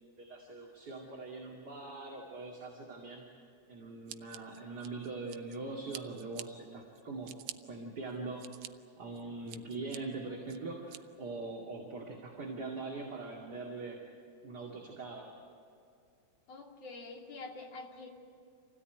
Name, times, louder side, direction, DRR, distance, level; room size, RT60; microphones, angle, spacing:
voice 1, 0.2-3.2 3.7-7.3 7.6-8.4 9.0-14.0 14.4-15.3, right 3 dB, 35° right, -2 dB, 2.7 m, -42 dB
Scissors, 4.1-5.6 5.9-6.5 6.9-7.6 8.1-8.7 9.1-10.0 10.5-11.0, right 13 dB, 85° right, 2.1 m, -46 dB
voice 2, 16.5-18.1, left 3 dB, 55° left, 0 dB, 3.7 m, -46 dB
26.5 x 17.0 x 9.3 m, 2.4 s
omnidirectional pair, 3.4 m